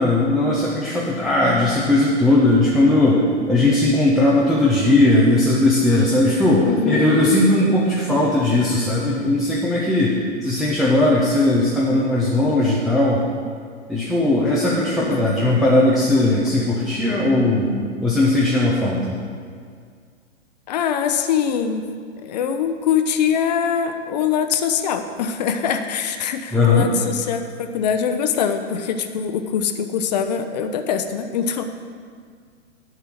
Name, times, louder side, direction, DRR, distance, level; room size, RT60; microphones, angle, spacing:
voice 1, 0.0-3.2 3.5-13.2 13.9-17.7 18.0-19.2 26.5-26.9, left 2 dB, ahead, -7 dB, 0.4 m, -18 dB
voice 2, 6.6-7.2 15.0-15.3 20.7-21.9 22.2-31.6, left 7 dB, 35° left, 8 dB, 0.6 m, -23 dB
9.7 x 5.6 x 7.7 m, 2.1 s
figure-of-eight pair, 110°, 36 cm